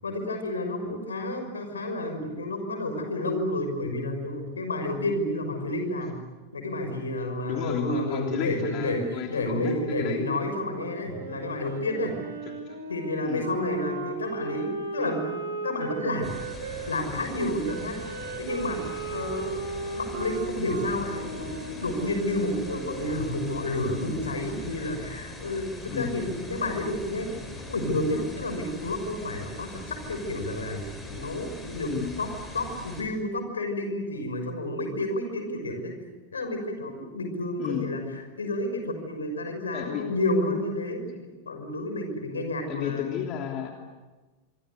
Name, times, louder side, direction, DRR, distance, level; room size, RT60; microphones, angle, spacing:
voice 1, 0.0-6.2 6.5-12.1 12.9-16.3 16.9-19.6 20.0-27.4 27.7-31.9 32.2-35.9 36.3-43.3, left 1 dB, 70° left, 6 dB, 5.9 m, -30 dB
voice 2, 7.5-10.2 12.4-12.8 13.2-13.4 25.9-26.2 31.8-32.1 37.6-37.9 39.7-40.1 42.7-43.7, left 9 dB, 40° left, 2 dB, 3.1 m, -32 dB
Wind instrument woodwind instrument, 11.1-17.0 17.6-23.5, right 3 dB, 65° right, 5.9 m, -36 dB
sound 1, 16.2-33.0, left 2 dB, 10° left, 6.6 m, -41 dB
25.5 x 25.0 x 8.2 m, 1.2 s
figure-of-eight pair, 90°, 0 cm